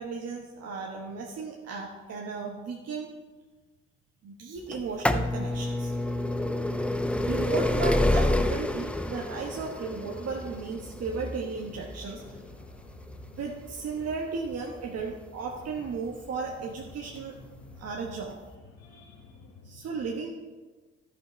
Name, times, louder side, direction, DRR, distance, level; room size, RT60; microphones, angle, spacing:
voice 1, 0.0-3.1 4.2-6.0 7.2-12.4 13.3-17.4 17.8-18.4 19.6-20.3, right 5 dB, 55° right, 0 dB, 1.3 m, -35 dB
sound 1, 4.7-16.4 17.2-17.3 18.2-18.3 18.5-18.6, left 1 dB, 5° left, 0.7 m, -29 dB
voice 2, 12.1-13.4 17.1-17.9 18.7-19.7, left 3 dB, 55° left, -2 dB, 1.5 m, -50 dB
13.0 x 5.6 x 4.5 m, 1.3 s
hypercardioid pair, 50°, 31 cm